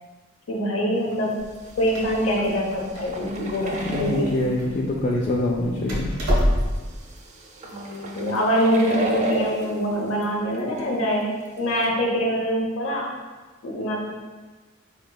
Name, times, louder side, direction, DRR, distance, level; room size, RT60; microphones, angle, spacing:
voice 1, 0.5-1.4 1.8-4.5 7.6-13.1 13.6-14.0, equal, 75° left, -1 dB, 0.7 m, -24 dB
sound 1, 1.1-1.2 1.6-4.5 5.3-5.4 6.6-10.2 10.5-10.8 11.1-11.2 11.7-11.8, right 1 dB, 35° right, 0.4 m, -33 dB
Door, 1.4-7.0, equal, 90° right, 0.9 m, -28 dB
voice 2, 3.8-6.1, left 1 dB, 40° left, -2 dB, 0.3 m, -25 dB
4.1 x 3.0 x 2.2 m, 1.3 s
head